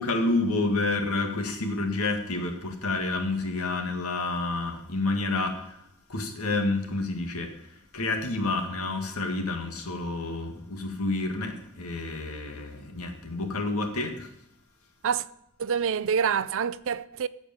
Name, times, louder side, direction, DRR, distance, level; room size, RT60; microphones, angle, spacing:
voice 1, 0.0-5.8 6.1-7.5 7.9-14.3, left 2 dB, 90° left, 1.9 m, -29 dB
voice 2, 15.6-17.3, right 7 dB, 65° right, 0.5 m, -26 dB
14.5 x 5.3 x 7.0 m
head